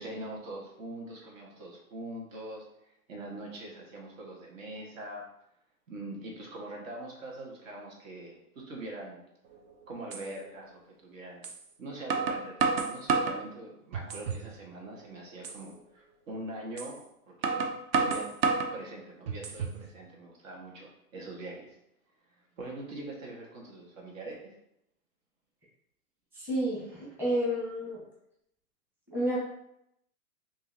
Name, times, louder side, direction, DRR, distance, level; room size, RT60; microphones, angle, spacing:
voice 1, 0.0-5.2 5.9-9.2 9.9-11.4 11.8-17.0 17.3-18.3 18.7-21.8 22.3-24.5, right 1 dB, 60° right, -1 dB, 1.5 m, -43 dB
sound 1, 9.5-9.6 10.1-10.2 11.4-11.6 12.1-13.4 13.9-14.5 14.9-15.0 15.4-15.6 16.8-16.9 17.4-18.7 19.3-19.8, right 4 dB, 40° right, 0.6 m, -29 dB
voice 2, 26.3-28.0 29.1-29.4, equal, 5° right, -8 dB, 1.0 m, -30 dB
5.4 x 2.8 x 2.7 m, 0.78 s
hypercardioid pair, 145°, 45 cm